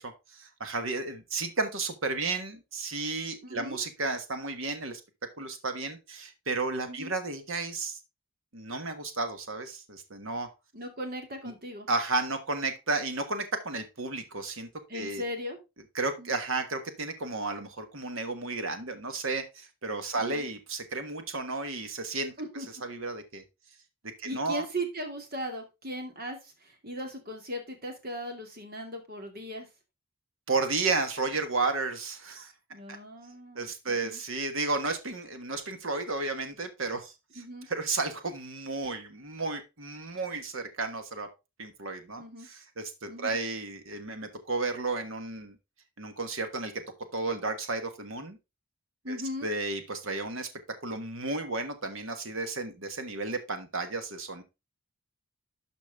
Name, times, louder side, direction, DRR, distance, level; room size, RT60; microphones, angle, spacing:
voice 1, 0.0-5.0 5.4-8.0 8.5-10.5 11.9-14.7 14.9-15.2 15.9-22.3 22.8-23.4 24.2-24.6 30.5-32.5 33.5-37.1 37.7-41.3 41.6-45.5 46.0-46.8 47.1-48.4 49.1-49.2 49.4-50.5 50.8-54.4, right 3 dB, 60° right, 8 dB, 1.4 m, -33 dB
voice 2, 3.4-3.8 6.9-7.1 10.7-11.9 14.9-15.6 16.2-16.3 20.1-20.4 22.4-22.7 24.2-29.7 32.7-34.2 37.3-37.7 42.2-42.5 43.1-43.4 49.0-49.5, equal, 40° right, 4 dB, 2.5 m, -38 dB
12.0 x 5.2 x 3.5 m, 0.25 s
head